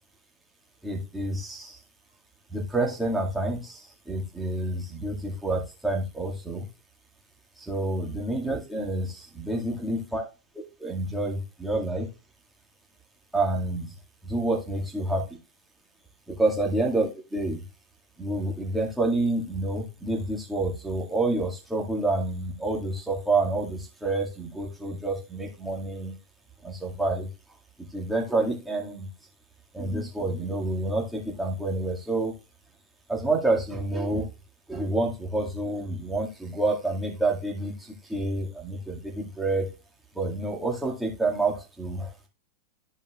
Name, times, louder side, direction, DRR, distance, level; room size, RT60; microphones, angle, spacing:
voice 1, 0.8-1.8 2.5-6.7 7.7-10.2 10.8-12.1 13.3-13.8 14.2-15.2 16.4-17.6 18.2-26.2 26.6-27.3 27.8-29.1 29.7-32.3 33.1-34.3 34.7-39.7 40.2-42.1, right 2 dB, 5° right, -3 dB, 2.1 m, -28 dB
13.0 x 5.3 x 2.4 m, 0.30 s
figure-of-eight pair, 90°, 0 cm